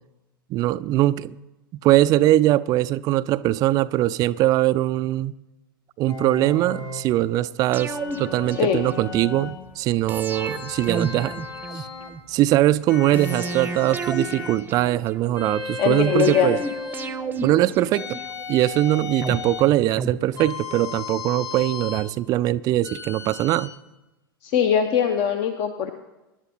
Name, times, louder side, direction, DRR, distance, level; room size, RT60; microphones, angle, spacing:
voice 1, 0.5-1.4 1.7-5.3 6.0-11.4 11.7-11.9 12.3-16.6 17.4-18.2 18.5-23.7, right 15 dB, 30° right, 0.4 m, -21 dB
sound 1, 6.1-7.1 7.9-9.6 10.3-12.2 12.9-14.6 15.3-17.2 17.9-19.7 20.4-22.1 22.8-23.7, left 4 dB, 70° left, 2.7 m, -35 dB
sound 2, 7.7-9.3 10.1-12.2 13.1-15.4 16.2-18.6 19.2-20.9 21.2-21.3, right 4 dB, 15° right, 0.8 m, -32 dB
voice 2, 15.8-16.6 24.4-25.9, left 8 dB, 45° left, 1.0 m, -21 dB
26.0 x 11.0 x 2.9 m
figure-of-eight pair, 90°, 12 cm